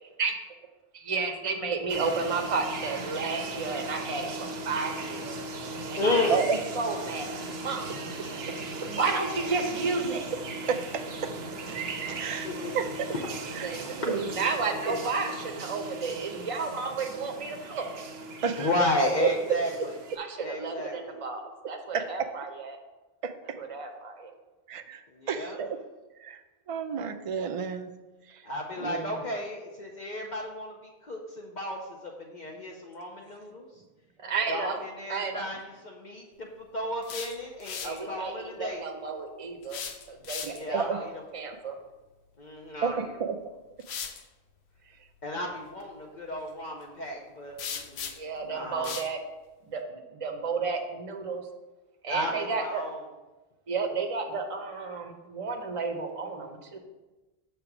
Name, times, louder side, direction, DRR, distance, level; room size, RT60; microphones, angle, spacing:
voice 1, 0.9-5.4 5.9-6.2 6.7-7.3 7.6-7.9 8.4-10.3 13.6-17.9 20.2-21.4 21.7-22.8 23.6-24.3 34.2-34.8 35.1-35.5 37.8-39.8 40.1-41.1 41.3-41.8 48.2-49.2 49.7-51.4 52.0-52.8 53.7-56.8, right 4 dB, 35° right, 4 dB, 0.8 m, -32 dB
sound 1, 1.9-20.2, right 3 dB, 75° right, 1.0 m, -38 dB
voice 2, 6.0-6.4 12.4-12.8 13.7-13.8 18.6-20.0 20.4-21.2 25.1-25.6 28.4-30.7 31.0-33.7 34.5-38.8 40.5-41.1 42.4-43.1 45.2-48.1 48.4-48.9 52.1-53.0, left 1 dB, 50° left, -2 dB, 0.9 m, -33 dB
voice 3, 10.7-11.0 12.1-12.5 12.7-12.9 13.6-13.7 14.1-14.3 18.4-18.7 19.2-19.3 21.9-22.3 23.2-23.3 24.7-25.0 25.3-25.8 26.2-26.4 26.7-27.9 28.8-29.2 40.4-41.0 42.8-43.4, right 6 dB, 50° right, 8 dB, 0.4 m, -30 dB
sound 2, 36.8-38.0 39.6-40.8 42.9-43.0 43.8-44.2 47.6-48.4 48.8-49.1, left 7 dB, 90° left, 0.9 m, -38 dB
6.8 x 3.4 x 6.0 m, 1.1 s
omnidirectional pair, 1.1 m